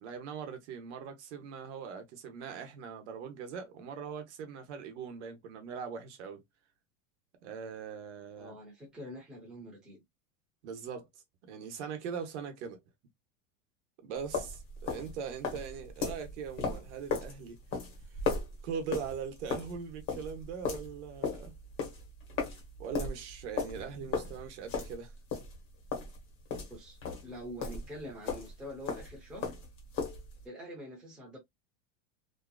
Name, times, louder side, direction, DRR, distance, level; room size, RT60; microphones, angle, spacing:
voice 1, 0.0-6.4 7.4-8.6 10.6-11.1 11.4-12.8 14.0-17.6 18.1-18.2 18.6-21.5 22.8-25.1, right 6 dB, 60° right, 0.9 m, -41 dB
voice 2, 8.4-10.0 15.5-15.6 26.7-29.5 30.4-31.4, equal, ahead, 0.5 m, -45 dB
sound 1, 14.2-28.0 28.2-30.4, left 5 dB, 30° left, 0.9 m, -37 dB
2.7 x 2.4 x 2.2 m
supercardioid pair, 175°, 39 cm